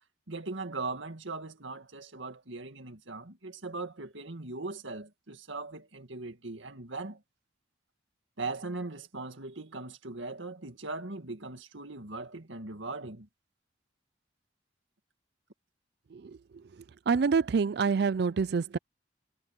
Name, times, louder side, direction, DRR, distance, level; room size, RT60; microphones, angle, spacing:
voice 1, 0.3-7.2 8.4-13.3, right 3 dB, 75° right, 2.1 m, -39 dB
voice 2, 17.1-18.8, right 5 dB, 55° right, 0.4 m, -26 dB
head